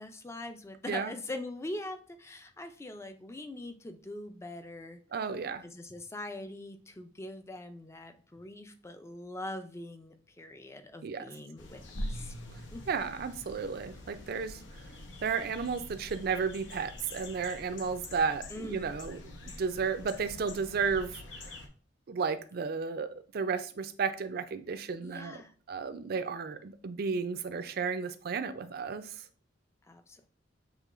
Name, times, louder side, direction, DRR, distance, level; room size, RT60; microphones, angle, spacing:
voice 1, 0.0-5.0 5.6-12.3 12.7-12.8 18.5-18.8 25.0-25.5 29.9-30.2, left 1 dB, 15° left, 0.4 m, -42 dB
voice 2, 5.1-5.6 11.0-11.3 12.9-14.9 15.2-21.6 22.1-25.4 25.7-29.2, right 5 dB, 55° right, 0.4 m, -33 dB
sound 1, 11.6-21.7, left 1 dB, 85° left, 0.8 m, -44 dB
6.4 x 3.0 x 2.5 m
head